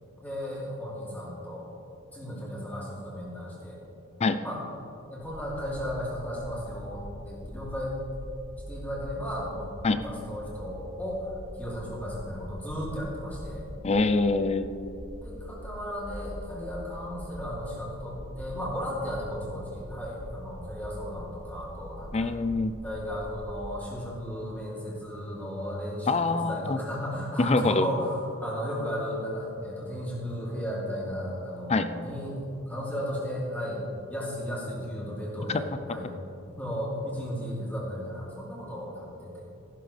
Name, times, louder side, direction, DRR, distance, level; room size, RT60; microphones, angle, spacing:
voice 1, 0.2-1.7 2.1-3.8 4.4-4.6 5.1-8.0 8.7-9.7 9.9-11.3 11.6-13.6 15.2-22.3 22.8-33.8 34.1-36.1 36.5-39.4, equal, 10° left, -6 dB, 3.0 m, -35 dB
sound 1, 5.2-23.6, equal, 50° right, 1.9 m, -43 dB
voice 2, 13.8-14.7 22.1-22.7 26.1-26.8 27.4-27.9 31.7-31.9 35.5-35.6, left 3 dB, 30° left, 11 dB, 0.4 m, -24 dB
14.5 x 12.0 x 3.4 m, 2.7 s
head